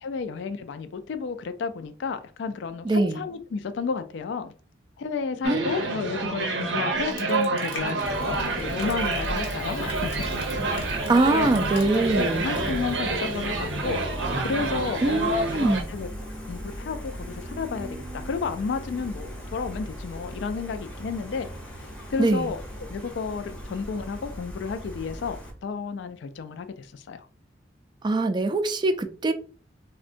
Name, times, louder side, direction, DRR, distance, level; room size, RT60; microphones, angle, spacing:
voice 1, 0.0-4.5 5.0-10.1 10.6-10.9 11.3-11.8 12.1-14.0 14.4-16.1 16.5-21.5 22.1-22.6 22.9-27.3, left 5 dB, 70° left, 0.3 m, -32 dB
voice 2, 2.8-3.2 5.4-5.9 11.1-12.5 15.0-15.9 22.2-22.5 28.0-29.3, right 2 dB, 25° right, 0.3 m, -23 dB
sound 1, 5.4-15.8, right 3 dB, 80° right, 0.6 m, -28 dB
Crushing, 6.9-12.2 12.5-12.7, left 1 dB, 90° left, 0.9 m, -41 dB
Gull seagull, 8.0-25.5, equal, 5° left, 0.7 m, -37 dB
3.6 x 2.1 x 2.5 m
head